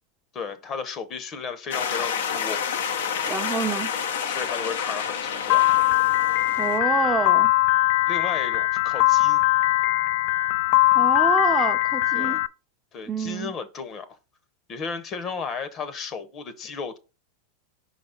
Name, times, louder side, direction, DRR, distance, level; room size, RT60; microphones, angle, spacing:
voice 1, 0.3-2.6 4.3-5.7 8.1-9.4 12.1-12.4 12.9-14.2 14.7-17.0, left 5 dB, 35° left, 1.0 m, -34 dB
sound 1, 1.7-6.8, left 7 dB, 80° left, 0.8 m, -29 dB
voice 2, 3.3-3.9 6.6-7.5 10.9-12.4 13.1-13.5, right 4 dB, 15° right, 0.6 m, -27 dB
Piano, 5.5-12.5, left 18 dB, 55° left, 0.3 m, -21 dB
5.4 x 4.1 x 5.1 m
hypercardioid pair, 110°, 0 cm